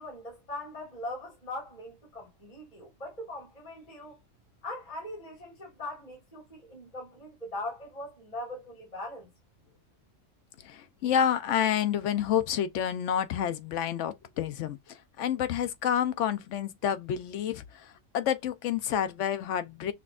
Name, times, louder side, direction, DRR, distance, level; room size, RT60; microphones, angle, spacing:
voice 1, 0.0-4.2 4.6-9.3, left 1 dB, 30° left, 1.7 m, -40 dB
voice 2, 10.6-19.9, left 9 dB, 70° left, 0.9 m, -29 dB
6.0 x 2.3 x 2.4 m
omnidirectional pair, 1.3 m